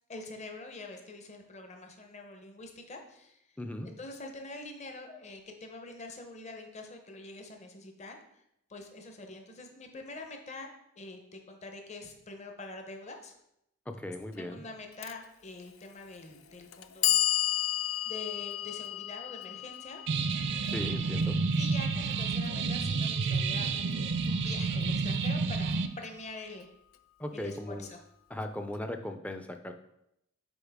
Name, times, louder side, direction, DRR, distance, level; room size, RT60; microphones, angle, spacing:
voice 1, 0.1-3.4 3.8-8.4 8.7-10.7 11.0-13.4 14.4-17.4 17.7-17.8 18.0-20.0 21.6-26.7 27.3-28.0, left 2 dB, 35° left, 3 dB, 0.8 m, -45 dB
voice 2, 3.6-3.9 13.9-14.6 20.7-21.4 27.2-27.9 28.3-29.7, left 1 dB, 5° left, 6 dB, 0.4 m, -38 dB
Clock, 15.0-15.1 16.1-16.2 16.7-22.8, left 13 dB, 70° left, 0.4 m, -33 dB
sound 1, 20.1-25.9, right 4 dB, 55° right, 0.4 m, -30 dB
7.0 x 4.6 x 3.5 m, 0.79 s
head